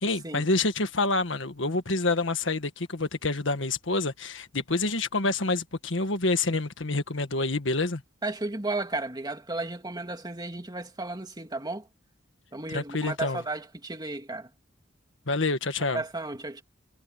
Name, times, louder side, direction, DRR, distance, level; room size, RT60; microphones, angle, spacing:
voice 1, 0.0-8.0 12.7-13.4 15.3-16.0, left 3 dB, 70° left, 1.7 m, -27 dB
voice 2, 8.2-11.9 12.5-14.5 15.9-16.6, right 2 dB, 20° right, 2.5 m, -34 dB
head